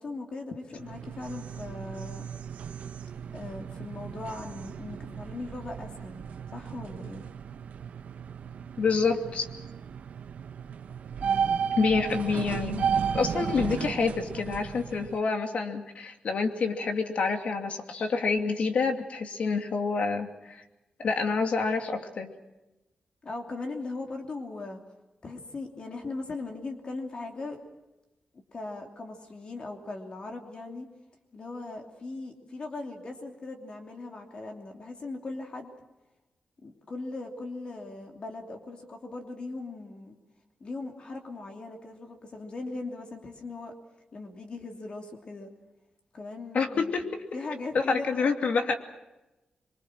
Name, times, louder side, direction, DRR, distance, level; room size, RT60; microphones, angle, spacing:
voice 1, 0.0-2.3 3.3-6.2 6.5-7.2 11.2-11.7 23.2-24.8 25.2-27.6 28.5-30.9 31.3-35.7 36.6-40.2 40.6-43.7 44.1-45.5 46.1-46.9 47.3-48.3, left 3 dB, 45° left, 2 dB, 3.0 m, -39 dB
sound 1, 0.7-15.2, right 7 dB, 80° right, 1.0 m, -34 dB
voice 2, 8.8-9.5 11.8-12.9 13.1-20.6 21.0-22.3 46.5-47.2 47.7-48.8, left 4 dB, 65° left, 5 dB, 2.7 m, -27 dB
25.5 x 24.0 x 6.3 m, 0.99 s
wide cardioid pair, 135°, 2 cm